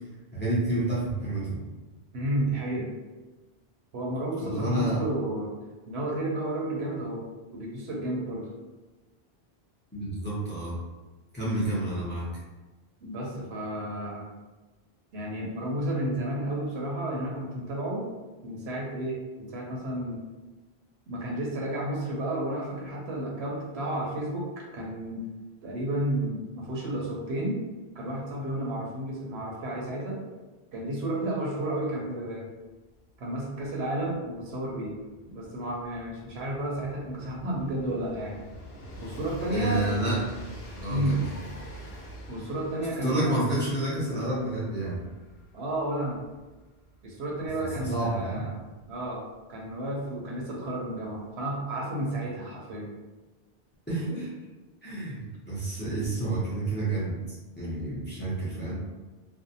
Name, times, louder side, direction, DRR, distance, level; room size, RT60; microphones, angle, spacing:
voice 1, 0.3-1.6 4.4-5.0 9.9-10.8 11.3-12.3 39.5-40.2 40.8-41.2 43.0-45.0 47.8-48.4 53.9-54.3 54.8-58.7, right 2 dB, 15° left, -8 dB, 0.6 m, -29 dB
voice 2, 2.1-2.9 3.9-5.5 5.9-7.2 7.5-8.5 13.0-14.3 15.1-18.1 18.4-20.2 21.1-25.2 25.6-27.6 27.9-30.2 30.7-32.4 33.2-35.0 35.3-38.4 39.0-39.9 40.9-41.2 42.3-43.4 45.5-46.2 47.0-48.6 48.9-49.2 49.5-52.9, right 1 dB, 85° right, -2 dB, 0.9 m, -32 dB
Train, 32.7-32.8 33.0-49.6 50.6-50.7, equal, 85° left, 0.9 m, -46 dB
2.5 x 2.0 x 2.7 m, 1.2 s
omnidirectional pair, 1.1 m